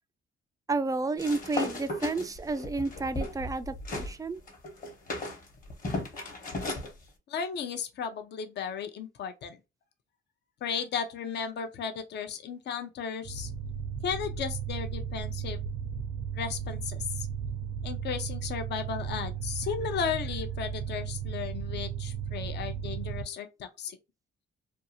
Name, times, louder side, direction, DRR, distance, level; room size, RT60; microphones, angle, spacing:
voice 1, 0.7-4.4, right 3 dB, 15° right, 0.3 m, -31 dB
sound 1, 1.2-4.1 4.5-6.9, left 2 dB, 45° left, 1.0 m, -35 dB
voice 2, 7.3-9.6 10.6-13.5 14.0-15.6 16.3-17.3 17.8-24.0, left 7 dB, 60° left, 0.6 m, -35 dB
sound 2, 13.2-23.2, right 7 dB, 60° right, 0.6 m, -35 dB
2.6 x 2.3 x 2.7 m
cardioid pair, 90°, 20 cm